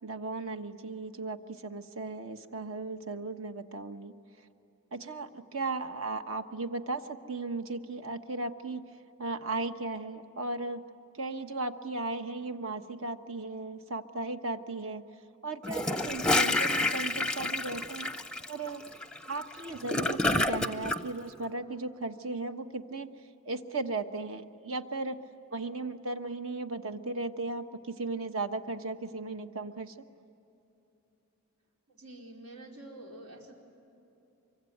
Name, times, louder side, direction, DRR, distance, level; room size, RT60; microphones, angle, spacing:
voice 1, 0.0-4.1 4.9-8.9 9.2-10.8 11.1-15.0 15.4-18.2 18.5-18.8 19.3-23.1 23.4-25.2 25.5-30.0, right 3 dB, 65° right, 8 dB, 1.2 m, -36 dB
Gurgling / Toilet flush, 15.6-21.0, left 2 dB, 5° left, 0.6 m, -29 dB
voice 2, 31.9-33.6, right 1 dB, 85° right, -1 dB, 4.5 m, -47 dB
25.0 x 24.0 x 9.4 m, 2.9 s
head